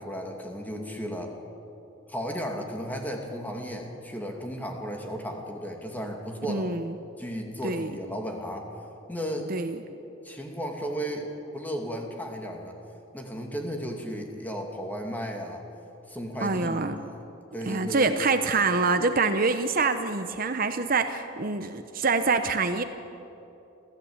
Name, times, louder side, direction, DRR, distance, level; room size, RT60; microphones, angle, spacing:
voice 1, 0.0-1.3 2.1-6.7 7.2-8.7 9.1-9.5 10.2-12.8 13.1-15.6 16.1-17.2 17.5-18.2, equal, 10° left, 2 dB, 2.5 m, -34 dB
voice 2, 6.5-7.0 7.6-7.9 9.5-9.8 16.4-17.0 17.7-22.8, right 4 dB, 45° right, 8 dB, 0.8 m, -25 dB
28.0 x 15.0 x 8.8 m, 2.9 s
head